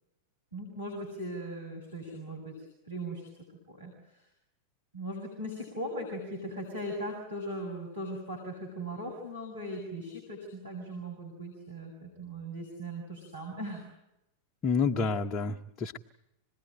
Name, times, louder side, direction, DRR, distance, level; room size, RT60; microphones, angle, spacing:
voice 1, 0.5-3.3 3.7-4.3 4.9-13.8, right 1 dB, 80° right, 0 dB, 6.9 m, -39 dB
voice 2, 14.6-16.0, left 5 dB, 30° left, 3 dB, 1.0 m, -29 dB
27.0 x 20.0 x 9.1 m, 0.89 s
figure-of-eight pair, 90°, 0 cm